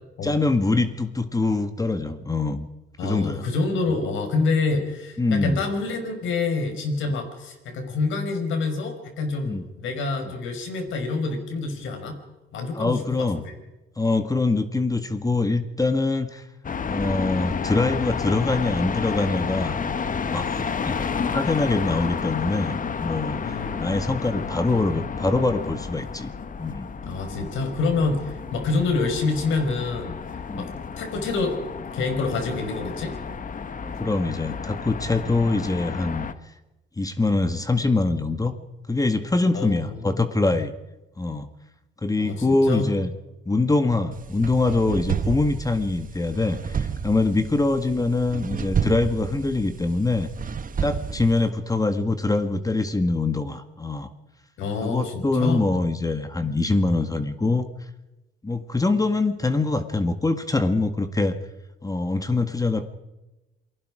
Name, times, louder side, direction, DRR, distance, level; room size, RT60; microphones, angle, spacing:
voice 1, 0.2-2.7 3.0-3.5 5.2-5.6 9.5-9.6 10.3-10.4 12.7-13.4 14.0-16.4 16.9-19.8 20.3-21.1 21.3-26.3 26.6-26.9 30.5-30.7 33.8-36.3 37.0-38.5 38.9-40.7 41.2-41.5 42.0-43.1 43.5-50.3 50.8-54.1 54.8-57.7 58.4-61.4 61.8-62.8, left 3 dB, 15° left, 8 dB, 1.8 m, -24 dB
voice 2, 3.0-12.2 12.5-13.4 23.4-23.8 27.0-30.2 30.5-30.7 31.0-31.6 31.9-33.2 39.5-40.3 42.2-42.9 54.6-55.7, left 3 dB, 80° left, 6 dB, 5.3 m, -27 dB
sound 1, 16.6-36.3, left 6 dB, 40° left, 1.4 m, -31 dB
sound 2, 44.1-51.5, right 6 dB, 45° right, 1.3 m, -30 dB
28.0 x 19.5 x 5.0 m, 1.0 s
cardioid pair, 90°, 20 cm